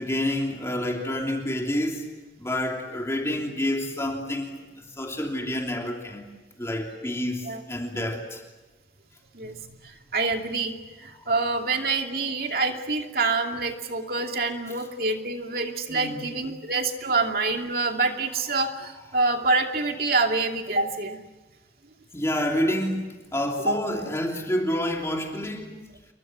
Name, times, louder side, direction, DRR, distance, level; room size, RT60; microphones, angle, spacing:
voice 1, 0.0-2.1 2.4-6.3 6.6-8.4 11.1-11.3 15.9-16.3 22.1-25.7, left 1 dB, 15° left, 1 dB, 3.2 m, -28 dB
voice 2, 9.8-10.7 11.0-21.2 23.7-23.8, right 3 dB, 55° right, 3 dB, 2.7 m, -26 dB
28.5 x 23.5 x 7.6 m, 1.2 s
head